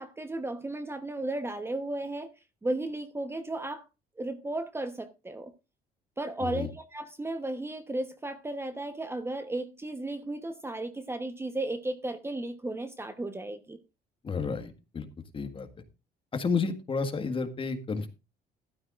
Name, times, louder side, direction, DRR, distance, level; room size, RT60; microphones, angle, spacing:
voice 1, 0.0-2.3 2.6-3.8 4.2-5.5 6.2-13.8, right 2 dB, 15° right, 1.0 m, -34 dB
voice 2, 14.2-15.1 15.3-15.7 16.3-18.1, left 4 dB, 30° left, 1.7 m, -31 dB
14.5 x 12.5 x 2.5 m
cardioid pair, 110°, 17 cm